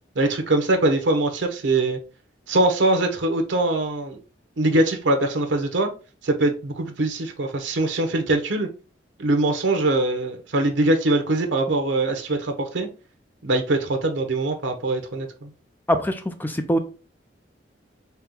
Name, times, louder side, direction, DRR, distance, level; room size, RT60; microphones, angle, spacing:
voice 1, 0.2-2.0 2.5-4.2 4.6-5.9 6.2-8.7 9.2-12.9 13.4-15.5, right 2 dB, 80° right, 6 dB, 0.8 m, -22 dB
voice 2, 15.9-16.8, equal, 10° left, 8 dB, 0.4 m, -23 dB
4.3 x 2.1 x 3.7 m, 0.33 s
head